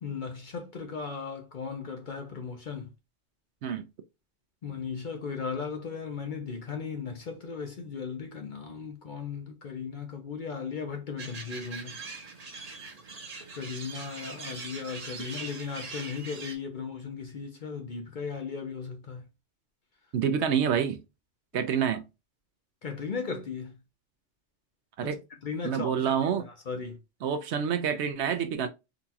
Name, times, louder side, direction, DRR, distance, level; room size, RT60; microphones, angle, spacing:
voice 1, 0.0-2.9 4.6-12.0 13.5-19.3 21.5-21.6 22.8-23.8 25.0-27.0, left 5 dB, 50° left, 0.7 m, -37 dB
sound 1, 11.2-16.5, right 4 dB, 40° right, 0.8 m, -42 dB
voice 2, 20.1-21.0 21.5-22.1 25.0-25.2 25.6-26.4 27.2-28.7, right 7 dB, 70° right, 0.8 m, -27 dB
3.9 x 2.3 x 2.7 m
omnidirectional pair, 1.3 m